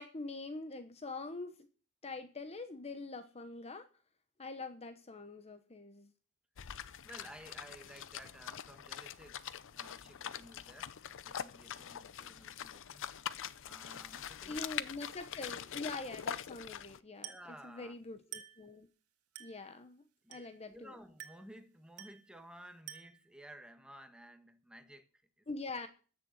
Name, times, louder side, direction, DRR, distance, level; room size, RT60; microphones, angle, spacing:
voice 1, 0.0-1.7 2.0-3.9 4.4-6.1 14.5-18.9 19.4-20.0 20.3-20.9 25.5-25.9, left 3 dB, 30° left, 0.9 m, -44 dB
sound 1, 6.6-17.0, left 9 dB, 60° left, 0.6 m, -44 dB
voice 2, 7.0-13.0 13.6-14.6 17.2-18.0 20.2-25.5, equal, 5° right, 1.4 m, -55 dB
Glass, 17.2-17.6 18.3-18.7 19.4-19.7 20.3-20.7 21.2-21.6 22.0-22.3 22.9-23.3, right 11 dB, 85° right, 1.7 m, -49 dB
15.0 x 6.7 x 7.8 m
head